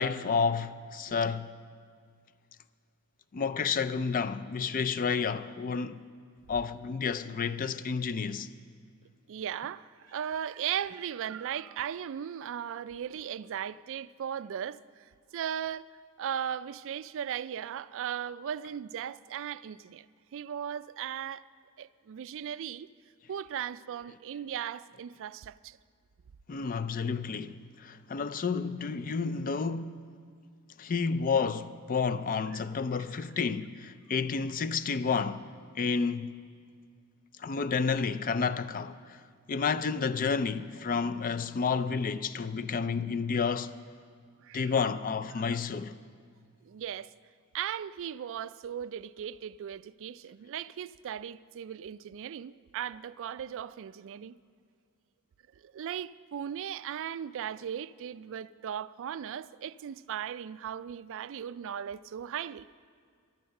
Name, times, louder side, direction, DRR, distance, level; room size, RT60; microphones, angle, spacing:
voice 1, 0.0-1.5 3.3-6.0 6.5-8.5 26.5-27.6 27.8-30.1 30.8-35.4 35.8-36.3 37.4-39.2 39.5-43.7 44.5-45.9, left 5 dB, 40° left, 0.4 m, -30 dB
voice 2, 9.3-20.1 20.3-21.4 21.8-22.9 23.3-25.8 32.5-32.7 44.4-44.7 45.4-45.5 46.6-47.1 47.5-54.4 55.6-62.7, right 9 dB, 60° right, 0.3 m, -37 dB
13.5 x 12.0 x 6.5 m
head